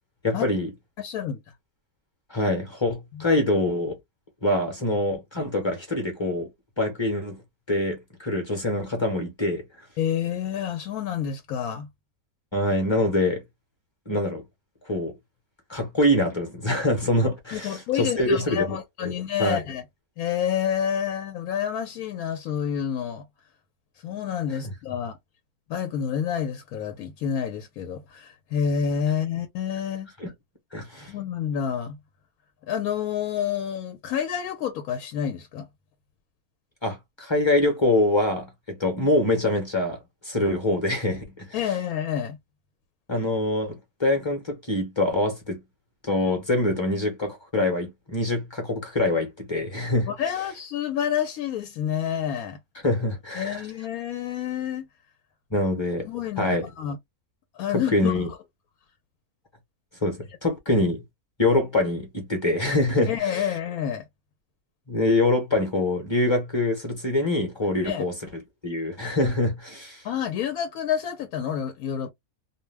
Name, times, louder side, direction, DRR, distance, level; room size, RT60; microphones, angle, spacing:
voice 1, 0.2-0.7 2.3-3.9 4.4-6.5 6.8-7.4 7.7-9.6 12.5-13.4 14.1-14.4 14.9-15.1 15.7-18.8 19.0-19.1 19.4-19.6 30.2-30.3 30.7-31.1 36.8-40.0 40.2-41.5 43.1-45.6 46.0-50.1 52.8-53.7 55.5-56.1 56.4-56.7 57.7-58.3 60.0-61.0 61.4-63.1 64.9-68.1 68.6-70.0, left 1 dB, 25° left, 0.8 m, -24 dB
voice 2, 1.0-1.4 3.1-3.2 5.4-5.5 10.0-11.9 17.5-19.8 20.2-23.2 24.0-25.2 25.7-30.1 31.1-32.0 32.7-35.7 41.5-42.4 50.1-52.6 53.3-54.9 56.0-57.0 57.5-58.1 63.1-64.0 67.8-68.0 70.0-72.1, left 8 dB, 90° left, 1.1 m, -28 dB
2.5 x 2.1 x 3.2 m
omnidirectional pair, 1.5 m